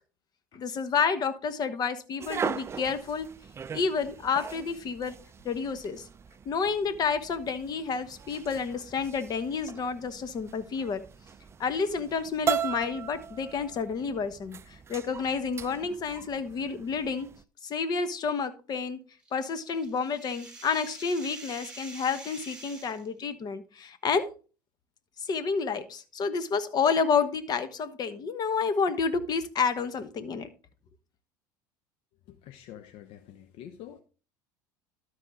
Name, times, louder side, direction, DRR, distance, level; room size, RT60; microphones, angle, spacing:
voice 1, 0.5-3.3 3.7-5.1 5.4-6.0 6.4-11.0 11.6-17.3 17.6-19.0 19.3-24.2 25.2-30.5, left 5 dB, 40° left, 11 dB, 1.1 m, -30 dB
sound 1, 2.2-17.4, right 7 dB, 25° right, 0.4 m, -39 dB
sound 2, 19.2-23.1, right 2 dB, 10° right, 3.2 m, -46 dB
voice 2, 32.3-34.0, left 11 dB, 60° left, 9 dB, 0.8 m, -47 dB
12.5 x 4.7 x 3.7 m, 0.36 s
hypercardioid pair, 80°, 10 cm